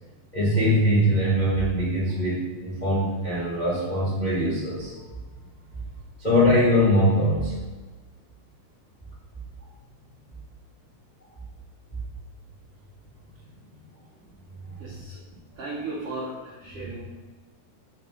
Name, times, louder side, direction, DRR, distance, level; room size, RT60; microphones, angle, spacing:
voice 1, 0.3-4.9 6.2-7.5 14.7-14.8, equal, 65° left, -10 dB, 0.4 m, -22 dB
voice 2, 14.8-15.2 15.6-17.0, right 2 dB, 85° right, -5 dB, 1.3 m, -36 dB
5.5 x 3.1 x 5.5 m, 1.3 s
omnidirectional pair, 3.9 m